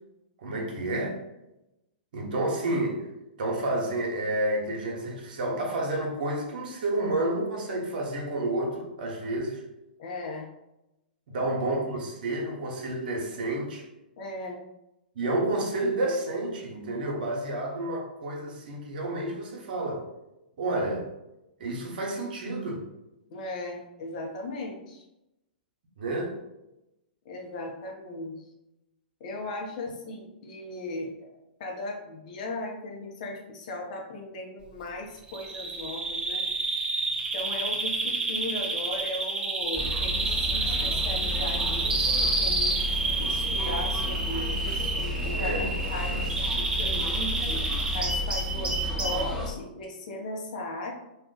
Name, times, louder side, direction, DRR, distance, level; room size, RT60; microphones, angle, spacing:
voice 1, 0.4-1.2 2.1-3.1 3.4-9.6 11.3-13.9 15.1-20.1 20.6-21.1 21.6-22.8 26.0-26.3 45.4-46.4, right 2 dB, 65° right, -1 dB, 0.9 m, -30 dB
voice 2, 10.0-10.5 11.3-11.5 14.2-14.6 23.3-25.0 27.2-28.4 29.2-31.1 31.6-36.4 37.3-42.7 43.2-45.6 45.9-46.2 46.6-47.3 47.9-50.9, left 2 dB, 55° left, 1 dB, 0.7 m, -37 dB
Bird vocalization bird call bird song, 35.3-49.3, right 3 dB, 15° right, 0.5 m, -29 dB
sound 1, 39.7-49.5, left 1 dB, 10° left, 1.1 m, -32 dB
2.5 x 2.3 x 3.7 m, 0.92 s
hypercardioid pair, 110°, 5 cm